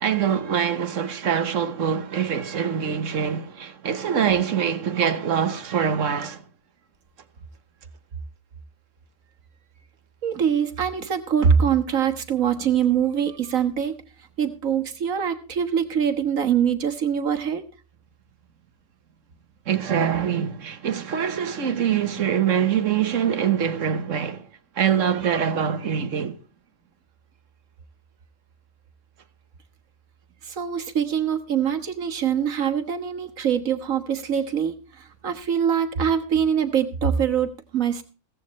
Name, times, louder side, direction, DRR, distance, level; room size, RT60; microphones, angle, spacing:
voice 1, 0.0-6.4 19.7-24.5 24.7-26.4, right 8 dB, 70° right, 1.5 m, -24 dB
voice 2, 10.2-13.9 14.4-17.6 30.4-38.0, right 8 dB, 90° right, 1.8 m, -23 dB
16.5 x 14.5 x 3.1 m
omnidirectional pair, 1.4 m